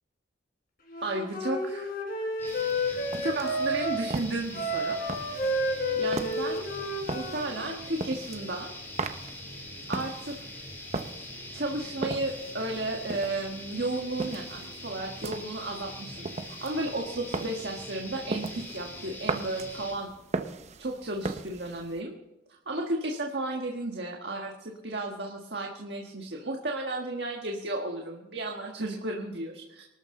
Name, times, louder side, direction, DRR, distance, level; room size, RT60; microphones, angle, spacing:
Wind instrument woodwind instrument, 0.9-4.0 4.5-7.8, equal, 50° left, 3.9 m, -31 dB
voice 1, 1.0-1.9 2.9-5.0 6.0-6.7 7.1-8.7 9.9-10.6 11.5-20.1 20.8-22.1 22.5-29.8, right 2 dB, 60° right, 1 dB, 1.7 m, -33 dB
sound 1, 2.4-19.9, left 1 dB, 10° left, 3.6 m, -43 dB
sound 2, 2.5-22.0, right 3 dB, 35° right, 0.8 m, -39 dB
24.5 x 12.5 x 3.9 m, 0.92 s
head